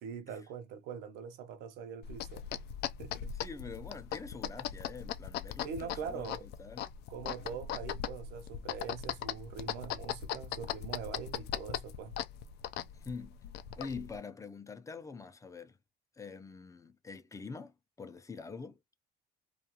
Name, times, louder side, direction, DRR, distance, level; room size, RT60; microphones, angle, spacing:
voice 1, 0.0-2.5 3.0-3.3 5.6-6.5 7.1-12.2, right 7 dB, 90° right, 0.6 m, -43 dB
sound 1, 2.0-14.2, left 10 dB, 75° left, 0.4 m, -40 dB
voice 2, 3.4-6.9 13.0-13.4 13.8-15.8 16.2-18.8, left 4 dB, 20° left, 0.4 m, -45 dB
2.4 x 2.3 x 2.8 m
cardioid pair, 110°, 17 cm